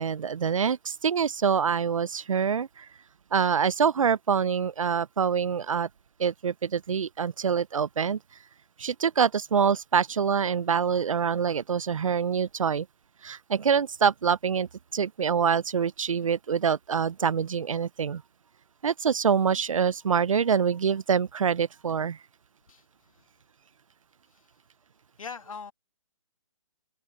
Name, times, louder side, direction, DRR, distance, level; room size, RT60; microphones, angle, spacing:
voice 1, 0.0-2.9 3.3-5.9 6.2-8.2 8.8-12.9 13.2-18.2 18.8-22.2, right 7 dB, 75° right, 0.6 m, -25 dB
voice 2, 25.2-25.7, left 5 dB, 80° left, 2.4 m, -41 dB
hypercardioid pair, 175°, 17 cm